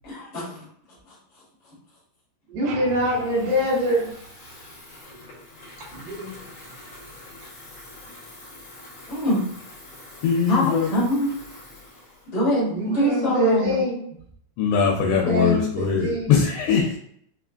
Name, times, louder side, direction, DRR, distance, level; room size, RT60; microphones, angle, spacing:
voice 1, 0.0-0.6 1.1-1.2 9.1-9.5 10.5-11.3 12.3-13.8, equal, 50° left, -7 dB, 1.7 m, -23 dB
voice 2, 2.5-4.1 5.9-6.5 12.7-14.2 15.0-16.4, equal, 70° right, -5 dB, 2.9 m, -25 dB
sound 1, 2.6-4.9, right 5 dB, 90° right, 2.8 m, -41 dB
Water tap faucet / Fill (with liquid), 2.8-13.1, left 1 dB, 70° left, 1.2 m, -45 dB
voice 3, 10.2-10.9 14.6-17.0, left 6 dB, 90° left, -1 dB, 2.7 m, -21 dB
6.4 x 2.3 x 2.4 m, 0.66 s
omnidirectional pair, 4.7 m